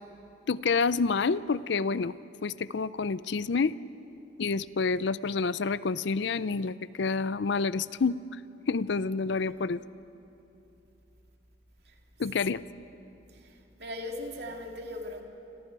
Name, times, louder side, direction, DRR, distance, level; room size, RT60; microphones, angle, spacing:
voice 1, 0.5-2.1 2.4-3.8 4.4-8.2 8.7-9.8 12.2-12.6, left 4 dB, 65° left, 0.5 m, -28 dB
voice 2, 13.3-15.2, left 1 dB, 55° right, 2.5 m, -40 dB
28.5 x 26.0 x 4.7 m
head